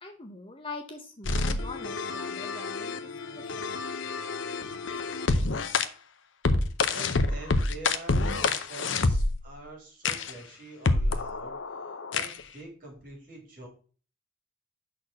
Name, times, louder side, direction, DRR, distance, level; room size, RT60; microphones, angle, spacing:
voice 1, 0.0-2.9 3.3-3.7, left 3 dB, 25° left, 4 dB, 0.8 m, -43 dB
sound 1, 1.3-5.9 6.4-9.5 10.0-10.3 10.9-12.4, left 3 dB, 70° left, 0.6 m, -28 dB
voice 2, 6.9-11.6 12.1-13.7, right 2 dB, 40° right, -1 dB, 3.2 m, -45 dB
6.0 x 4.2 x 6.2 m, 0.39 s
head